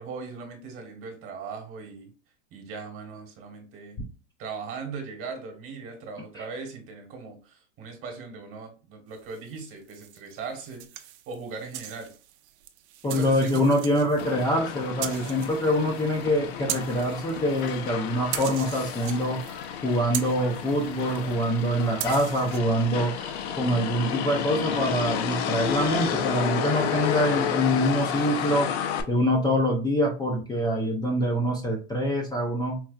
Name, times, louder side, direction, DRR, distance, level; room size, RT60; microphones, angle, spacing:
voice 1, 0.0-2.1 2.5-4.0 4.4-12.1 13.0-13.7, right 4 dB, 35° right, 4 dB, 1.2 m, -39 dB
sound 1, 9.2-17.9 18.2-22.6, right 11 dB, 60° right, 0.6 m, -40 dB
voice 2, 13.0-19.4 19.8-28.7 29.1-32.8, equal, 10° left, -2 dB, 0.5 m, -25 dB
Motor vehicle (road), 14.2-29.0, left 8 dB, 60° left, 0.7 m, -31 dB
4.5 x 2.3 x 2.4 m, 0.35 s
supercardioid pair, 125°, 37 cm